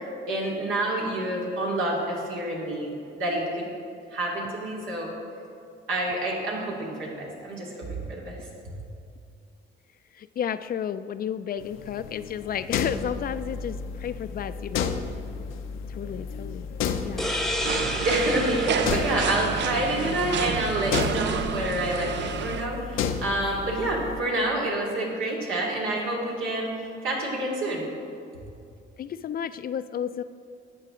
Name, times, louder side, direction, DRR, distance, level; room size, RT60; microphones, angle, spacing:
voice 1, 0.3-3.7 4.1-5.1 5.9-8.4 18.0-27.8, right 1 dB, 85° right, -4 dB, 2.6 m, -28 dB
voice 2, 10.1-15.0 15.9-16.7 17.0-17.3 29.0-30.2, left 8 dB, 50° left, 13 dB, 0.4 m, -32 dB
sound 1, 11.6-24.2, left 6 dB, 85° left, 0.6 m, -33 dB
sound 2, 17.2-20.6, left 1 dB, ahead, 0.8 m, -32 dB
sound 3, 17.6-22.7, right 7 dB, 65° right, 0.5 m, -30 dB
12.0 x 8.3 x 3.8 m, 2.5 s
cardioid pair, 90°, 20 cm